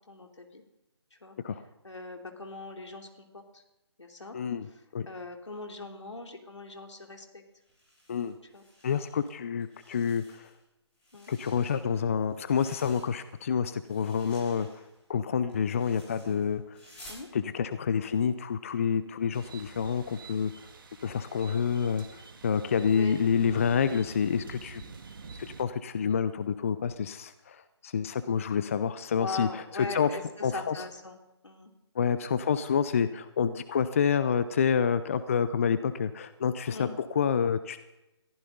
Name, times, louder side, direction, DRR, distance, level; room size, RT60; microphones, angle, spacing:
voice 1, 0.1-0.6 1.1-1.4 1.8-3.6 4.0-4.4 5.1-7.4 8.5-8.6 11.1-11.3 17.1-17.3 22.9-23.3 29.1-31.2 31.4-31.7 36.7-37.0, left 3 dB, 80° left, 3 dB, 3.1 m, -40 dB
voice 2, 4.3-4.7 4.9-5.1 8.1-8.3 8.8-10.5 11.3-14.7 15.1-16.8 17.3-20.5 21.0-24.8 25.6-30.1 30.4-30.8 32.0-37.9, left 7 dB, 30° left, 13 dB, 0.5 m, -28 dB
sound 1, 7.6-9.3 9.6-10.6 10.9-13.4 13.7-17.3, equal, 10° left, 5.7 m, -54 dB
sound 2, 19.3-25.6, right 4 dB, 45° right, 1.8 m, -47 dB
22.0 x 15.0 x 3.9 m, 0.96 s
figure-of-eight pair, 155°, 15 cm